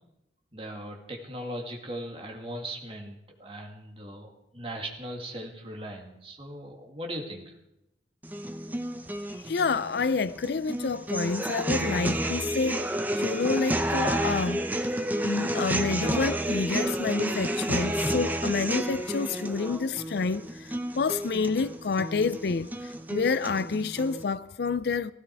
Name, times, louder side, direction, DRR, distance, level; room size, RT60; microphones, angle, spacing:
voice 1, 0.5-7.6, right 1 dB, 30° right, 2.3 m, -39 dB
sound 1, 8.2-24.2, right 1 dB, 10° right, 0.8 m, -30 dB
voice 2, 9.4-14.6 15.2-25.1, left 4 dB, 60° left, 0.4 m, -28 dB
16.0 x 16.0 x 4.7 m
head